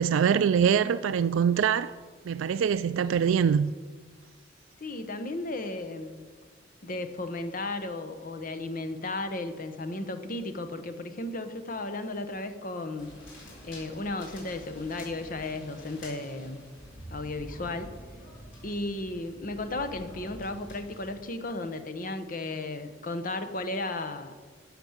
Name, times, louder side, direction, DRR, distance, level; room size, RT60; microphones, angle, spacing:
voice 1, 0.0-1.9 2.2-3.7, right 7 dB, 85° right, 0.3 m, -24 dB
voice 2, 4.8-6.2 6.8-13.1 13.6-16.6 17.1-17.9 18.6-24.4, left 2 dB, 45° left, 0.9 m, -34 dB
sound 1, 13.0-21.2, equal, 75° left, 4.2 m, -47 dB
12.0 x 7.1 x 7.2 m
head